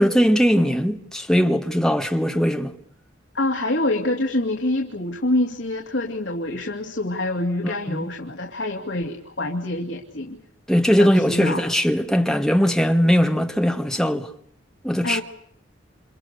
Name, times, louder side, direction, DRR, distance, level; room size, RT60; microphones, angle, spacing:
voice 1, 0.0-2.7 7.6-8.1 10.7-14.3 14.8-15.2, equal, 5° left, 1.6 m, -20 dB
voice 2, 3.3-10.4 10.9-11.6 15.0-15.2, left 1 dB, 70° left, 2.5 m, -26 dB
29.0 x 26.5 x 6.8 m
head